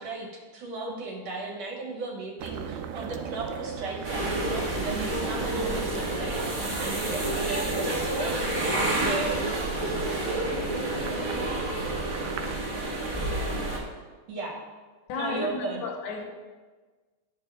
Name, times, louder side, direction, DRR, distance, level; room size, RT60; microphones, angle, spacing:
voice 1, 0.0-9.5 14.3-14.6 15.1-15.8, right 3 dB, 65° right, 0 dB, 2.1 m, -36 dB
sound 1, 2.4-12.6, right 7 dB, 90° right, 2.0 m, -37 dB
sound 2, 4.0-13.8, right 1 dB, 25° right, 1.1 m, -29 dB
voice 2, 15.1-16.2, left 4 dB, 90° left, 3 dB, 2.3 m, -33 dB
9.6 x 6.6 x 3.3 m, 1.4 s
omnidirectional pair, 3.3 m